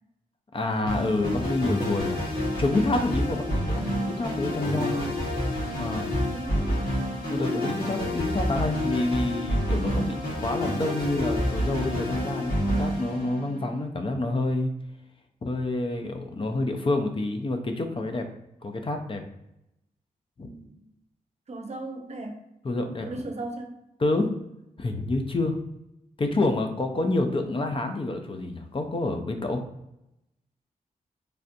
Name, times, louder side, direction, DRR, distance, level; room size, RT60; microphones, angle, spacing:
voice 1, 0.5-2.3 2.6-5.0 5.8-6.2 7.3-14.7 15.4-18.3 18.6-19.2 20.4-20.5 22.6-23.1 24.0-24.3 24.8-25.6 26.2-29.6, left 2 dB, 35° left, 5 dB, 0.5 m, -28 dB
sound 1, 0.9-13.8, equal, 75° left, 1.4 m, -28 dB
voice 2, 4.6-5.2 6.3-6.9 20.4-20.8 21.5-22.4 23.0-23.8, right 2 dB, 45° right, 4 dB, 0.7 m, -36 dB
3.2 x 2.5 x 2.5 m, 0.85 s
cardioid pair, 55°, 15 cm